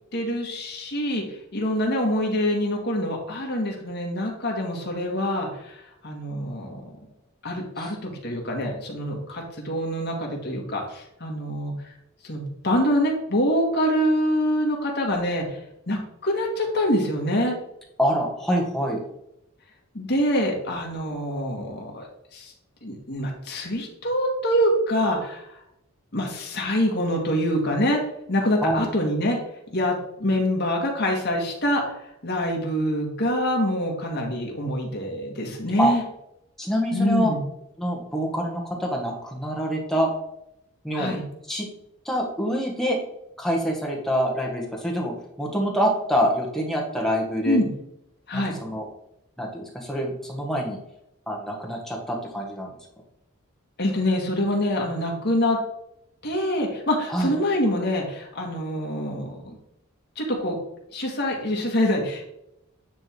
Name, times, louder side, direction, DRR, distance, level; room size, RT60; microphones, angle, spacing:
voice 1, 0.1-1.2 1.5-6.9 7.4-11.7 12.2-15.6 15.9-17.6 19.9-22.1 22.3-22.5 22.8-25.5 26.1-28.0 28.3-29.4 29.7-29.9 30.2-31.8 32.2-36.0 36.9-37.4 40.9-41.2 47.4-47.7 48.3-48.5 53.8-55.6 56.2-59.6 60.2-60.6 60.9-62.3, equal, 50° left, 0 dB, 1.8 m, -25 dB
voice 2, 18.0-19.0 28.6-28.8 35.8-35.9 36.6-37.3 37.8-40.1 40.8-41.1 41.5-41.7 42.0-43.0 43.4-47.6 48.3-48.8 49.4-50.8 51.3-52.7 57.1-57.3, equal, ahead, -1 dB, 1.4 m, -26 dB
9.6 x 3.6 x 4.6 m, 0.80 s
head